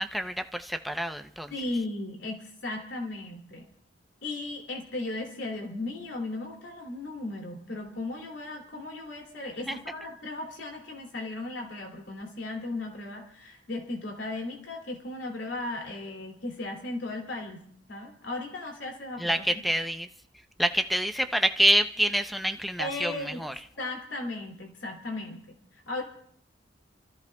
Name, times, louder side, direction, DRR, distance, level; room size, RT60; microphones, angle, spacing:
voice 1, 0.0-1.5 9.7-9.8 19.2-20.1 20.6-23.5, equal, ahead, 8 dB, 0.6 m, -27 dB
voice 2, 1.5-3.6 4.2-19.4 22.8-23.4 23.8-25.4 25.7-26.0, left 2 dB, 90° left, 1 dB, 2.7 m, -36 dB
29.5 x 15.0 x 2.3 m, 0.63 s
head